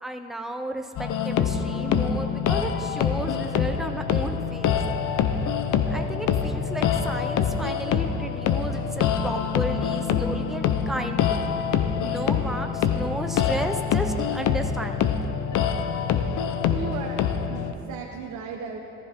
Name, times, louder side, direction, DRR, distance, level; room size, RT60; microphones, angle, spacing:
voice 1, 0.0-4.8 5.9-11.5 12.0-15.2, right 1 dB, ahead, 4 dB, 0.8 m, -33 dB
sound 1, 1.0-17.7, left 7 dB, 85° left, 0.8 m, -25 dB
voice 2, 16.7-18.8, right 6 dB, 80° right, 0 dB, 1.1 m, -36 dB
15.5 x 14.5 x 3.7 m, 2.9 s
cardioid pair, 90°, 30 cm